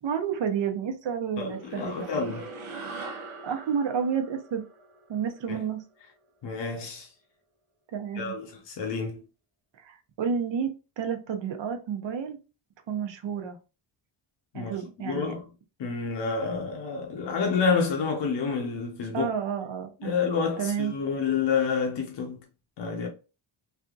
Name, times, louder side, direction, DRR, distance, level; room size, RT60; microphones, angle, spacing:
voice 1, 0.0-2.1 3.1-4.6 5.1-5.8 7.9-8.4 9.8-12.4 12.9-13.6 14.5-15.3 19.1-20.1 20.6-20.9, right 7 dB, 65° right, 0.8 m, -30 dB
voice 2, 1.4-2.5 5.5-5.6 6.4-7.1 8.1-9.2 14.5-15.4 15.8-19.3 20.0-22.4 22.8-23.1, left 5 dB, 60° left, 0.8 m, -29 dB
sound 1, 1.5-6.1, right 3 dB, 90° right, 0.9 m, -42 dB
3.3 x 2.7 x 2.4 m
wide cardioid pair, 125°, 49 cm